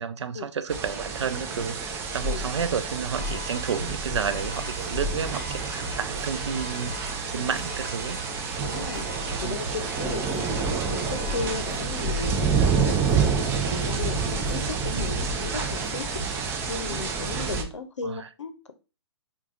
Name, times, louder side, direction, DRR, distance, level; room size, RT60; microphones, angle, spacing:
voice 1, 0.0-8.2 9.4-9.7 14.9-15.2 18.0-18.3, right 7 dB, 75° right, 0.4 m, -31 dB
sound 1, 0.7-17.6, right 5 dB, 15° right, 0.4 m, -28 dB
sound 2, 3.1-12.1, left 4 dB, 25° left, 0.6 m, -45 dB
sound 3, 3.5-16.7, right 2 dB, 50° right, 0.9 m, -40 dB
voice 2, 7.3-7.7 8.6-13.4 13.7-16.1 16.7-18.7, left 4 dB, 85° left, 0.6 m, -36 dB
4.6 x 2.3 x 2.4 m
hypercardioid pair, 130°, 15 cm